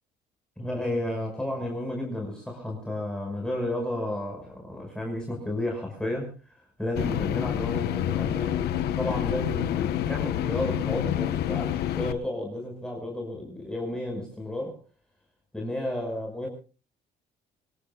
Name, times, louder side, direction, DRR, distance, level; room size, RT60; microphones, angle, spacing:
voice 1, 0.6-6.5 6.8-14.8 15.5-16.5, left 1 dB, 5° left, 5.9 m, -32 dB
sound 1, 6.9-12.1, left 11 dB, 75° left, 1.2 m, -28 dB
25.5 x 20.5 x 2.4 m
cardioid pair, 110°, 17 cm